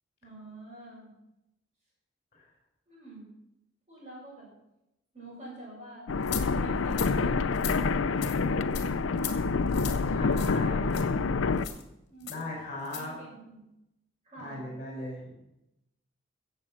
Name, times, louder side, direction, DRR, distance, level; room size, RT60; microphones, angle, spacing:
voice 1, 0.2-1.1 2.9-3.2 3.9-4.5 5.1-6.1 6.4-9.6 10.1-11.7 12.1-12.4 12.9-13.7 14.2-14.7, right 2 dB, 30° right, -10 dB, 6.6 m, -48 dB
sound 1, 6.1-11.7, left 4 dB, 85° left, 0.6 m, -27 dB
sound 2, 6.3-6.4 6.9-7.1 7.5-7.8 8.2-8.4 8.7-8.9 9.2-9.4 9.7-10.0 10.4-10.6 10.9-11.0 11.6-11.8 12.3-12.4 12.8-13.0, left 11 dB, 55° left, 2.1 m, -37 dB
voice 2, 10.1-10.9 12.2-13.1 14.4-15.3, left 1 dB, 30° left, -1 dB, 5.3 m, -38 dB
16.0 x 7.7 x 7.4 m, 0.89 s
head